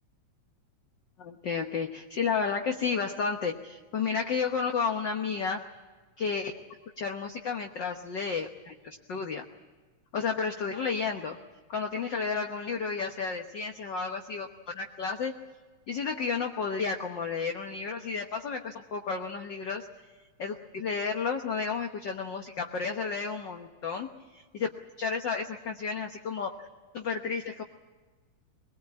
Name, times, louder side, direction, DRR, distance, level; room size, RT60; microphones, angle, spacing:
voice 1, 1.2-5.6 6.2-6.6 7.0-9.4 10.1-11.4 11.7-14.5 14.7-15.4 15.9-19.9 20.4-24.7 25.0-26.7 26.9-27.6, left 5 dB, 55° left, 4 dB, 1.2 m, -32 dB
22.5 x 20.5 x 8.7 m, 1.3 s
omnidirectional pair, 3.5 m